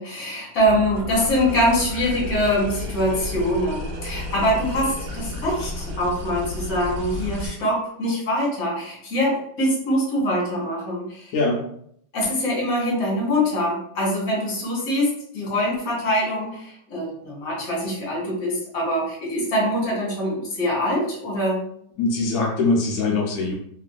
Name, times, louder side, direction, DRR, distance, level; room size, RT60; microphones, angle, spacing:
voice 1, 0.0-11.3 12.1-21.6, equal, 55° left, -4 dB, 1.5 m, -24 dB
sound 1, 0.6-7.5, left 1 dB, 65° right, 1.1 m, -32 dB
voice 2, 22.0-23.5, left 3 dB, 70° left, -2 dB, 0.8 m, -22 dB
3.2 x 2.5 x 2.3 m, 0.68 s
omnidirectional pair, 2.1 m